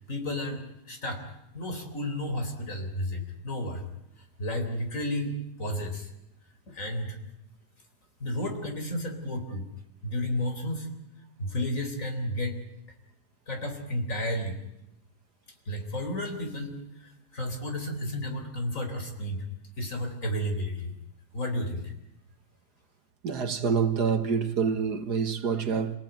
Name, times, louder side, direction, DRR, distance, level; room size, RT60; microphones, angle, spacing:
voice 1, 0.1-1.2 1.5-3.8 4.4-6.1 6.7-7.2 8.2-9.7 10.0-10.9 11.4-12.6 13.5-14.6 15.7-19.5 19.8-20.9 21.3-21.9, left 1 dB, 50° left, 4.4 m, -32 dB
voice 2, 23.2-26.0, right 6 dB, 75° right, 2.2 m, -27 dB
28.5 x 18.5 x 9.2 m
omnidirectional pair, 1.7 m